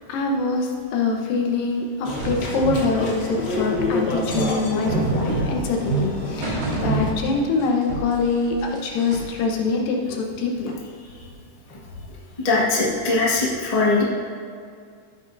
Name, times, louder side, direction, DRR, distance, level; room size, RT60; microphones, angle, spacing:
voice 1, 0.1-1.9 2.2-10.7, left 3 dB, 85° left, 1 dB, 2.8 m, -24 dB
sound 1, 2.0-7.1, left 2 dB, 70° left, 1.0 m, -28 dB
sound 2, 2.2-7.6 7.9-9.4, right 3 dB, 85° right, 4.1 m, -28 dB
voice 2, 12.4-14.0, left 3 dB, 40° left, -4 dB, 0.5 m, -20 dB
13.0 x 9.0 x 2.7 m, 2.2 s
omnidirectional pair, 3.8 m